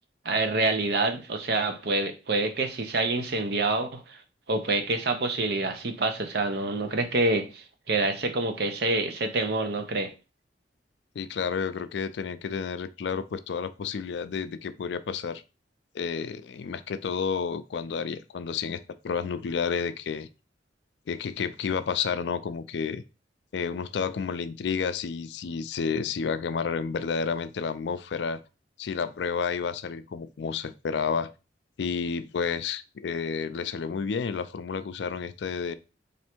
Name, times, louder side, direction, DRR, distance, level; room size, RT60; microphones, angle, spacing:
voice 1, 0.2-4.2 4.5-10.1, right 2 dB, 60° right, 0.7 m, -27 dB
voice 2, 11.2-15.4 15.9-20.3 21.1-23.0 23.5-28.4 28.8-31.3 31.8-35.7, left 6 dB, 70° left, 0.4 m, -30 dB
3.2 x 2.6 x 4.4 m
head